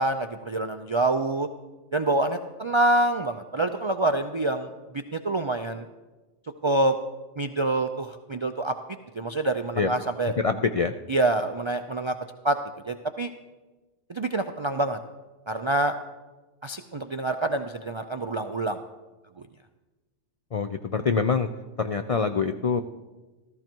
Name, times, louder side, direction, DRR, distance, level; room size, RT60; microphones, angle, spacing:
voice 1, 0.0-1.5 1.9-5.8 6.6-6.9 7.4-8.7 9.2-10.3 11.1-12.1 12.4-12.6 12.9-13.3 14.1-15.0 15.5-15.9 16.6-18.8, right 2 dB, 50° right, 7 dB, 0.3 m, -26 dB
voice 2, 10.4-10.9 20.5-21.5 21.8-22.8, left 5 dB, 60° left, 7 dB, 0.3 m, -25 dB
14.0 x 14.0 x 4.5 m, 1.2 s
omnidirectional pair, 1.3 m